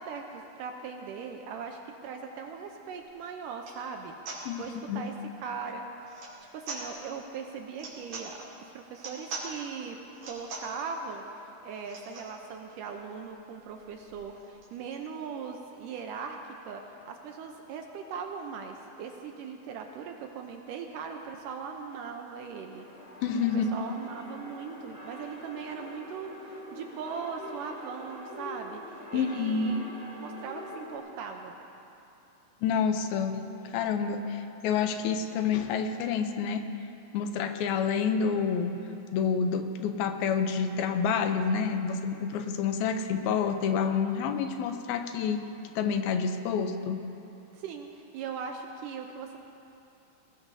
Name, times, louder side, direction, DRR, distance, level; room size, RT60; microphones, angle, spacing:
voice 1, 0.0-6.1 6.5-16.4 16.7-22.9 23.5-29.8 30.2-31.5 47.5-49.4, right 6 dB, 80° right, 3 dB, 2.1 m, -39 dB
sound 1, 2.9-3.0 3.5-3.8 4.3-4.4 6.1-6.4 6.6-6.9 7.7-8.3 8.9-9.5 10.1-10.7 11.8-12.3 12.9-13.0 13.1-13.3 13.5-15.0, right 3 dB, 55° right, 4.0 m, -41 dB
voice 2, 4.5-5.1 23.2-23.7 29.1-29.8 32.6-36.7 37.1-38.8 39.1-45.4 45.8-47.1, left 6 dB, 80° left, 7 dB, 2.6 m, -28 dB
sound 2, 22.7-31.0, left 1 dB, 10° left, 2.4 m, -45 dB
21.0 x 19.0 x 2.7 m, 2.8 s
omnidirectional pair, 4.3 m